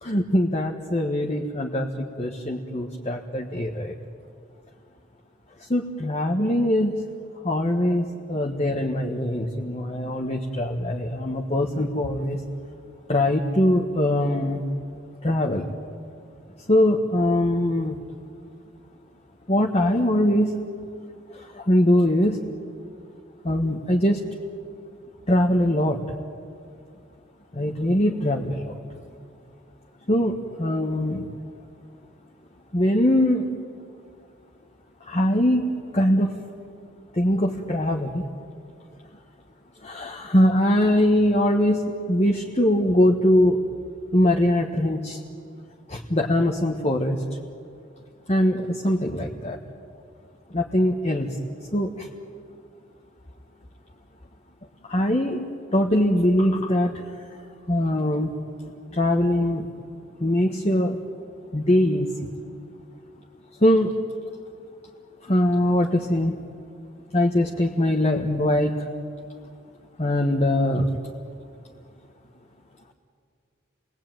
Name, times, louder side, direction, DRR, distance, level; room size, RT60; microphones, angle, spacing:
voice 1, 0.0-3.9 5.7-7.0 7.4-12.4 13.1-14.6 15.2-15.6 16.7-18.0 19.5-20.6 21.3-22.4 23.4-24.2 25.3-26.0 27.5-28.7 30.1-31.3 32.7-33.5 35.0-36.4 37.1-38.2 39.8-43.6 44.1-45.2 45.9-47.2 48.3-49.6 50.5-51.3 51.7-52.1 54.8-55.4 55.7-57.4 57.7-58.3 58.9-59.7 60.2-61.0 61.5-62.3 63.6-63.9 65.2-66.3 67.1-68.9 70.0-71.0, left 1 dB, 30° left, 1 dB, 1.4 m, -22 dB
30.0 x 20.0 x 9.2 m, 2.3 s
head